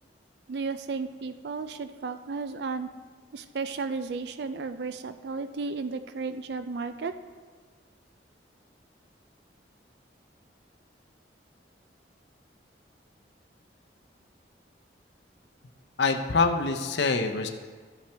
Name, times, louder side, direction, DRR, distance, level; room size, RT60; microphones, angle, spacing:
voice 1, 0.5-2.9 3.3-7.1, right 4 dB, 65° right, 10 dB, 0.4 m, -34 dB
voice 2, 16.0-17.5, left 4 dB, 70° left, 5 dB, 0.6 m, -25 dB
14.0 x 5.7 x 3.4 m, 1.5 s
head